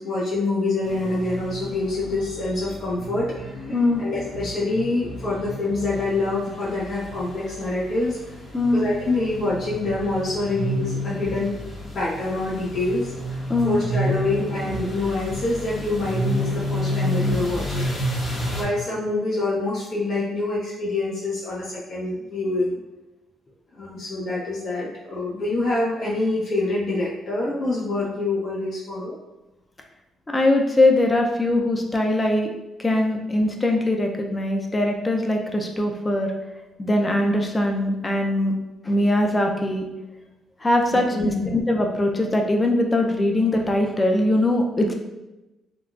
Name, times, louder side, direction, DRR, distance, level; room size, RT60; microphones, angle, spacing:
voice 1, 0.0-8.2 8.7-11.6 11.9-17.9 18.5-22.8 23.7-29.2 41.1-41.5, left 2 dB, 65° left, -7 dB, 0.8 m, -26 dB
sound 1, 0.8-18.6, equal, 45° left, 1.0 m, -30 dB
voice 2, 3.7-4.0 8.5-8.8 13.5-13.8 30.3-32.5 32.8-36.3 36.8-38.5 38.8-39.9 40.6-44.9, left 1 dB, 20° left, 2 dB, 0.5 m, -21 dB
3.6 x 2.3 x 2.4 m, 1.0 s
cardioid pair, 90°, 0 cm